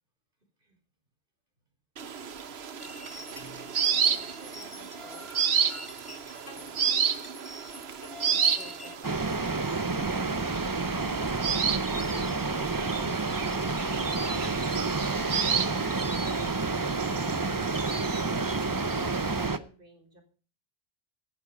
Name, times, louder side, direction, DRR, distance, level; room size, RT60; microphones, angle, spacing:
sound 1, 2.0-19.5, right 7 dB, 85° right, 1.2 m, -32 dB
sound 2, 2.8-9.0, left 2 dB, 30° left, 2.1 m, -46 dB
voice 1, 3.8-5.3 6.5-6.9 8.3-10.5 18.7-20.2, equal, 60° right, 5 dB, 4.3 m, -53 dB
sound 3, 9.0-19.6, right 3 dB, 25° right, 0.7 m, -29 dB
16.5 x 9.9 x 5.3 m, 0.40 s
omnidirectional pair, 1.0 m